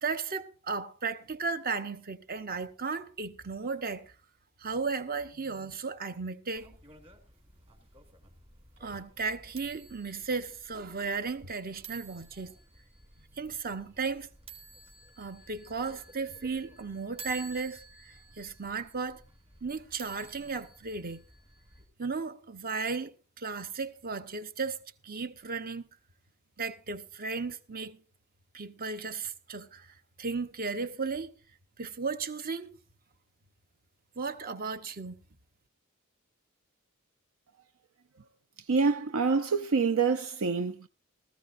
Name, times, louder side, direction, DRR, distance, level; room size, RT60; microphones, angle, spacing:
voice 1, 0.0-4.1 4.6-6.8 8.8-12.5 13.4-14.3 15.2-19.2 19.6-21.2 22.0-25.9 26.6-28.0 28.5-31.3 31.8-32.8 34.2-35.1, right 4 dB, 45° right, 1.0 m, -35 dB
sound 1, 6.5-21.9, right 2 dB, 30° right, 3.0 m, -52 dB
voice 2, 38.7-40.9, right 5 dB, 70° right, 0.6 m, -26 dB
18.5 x 14.5 x 2.6 m
head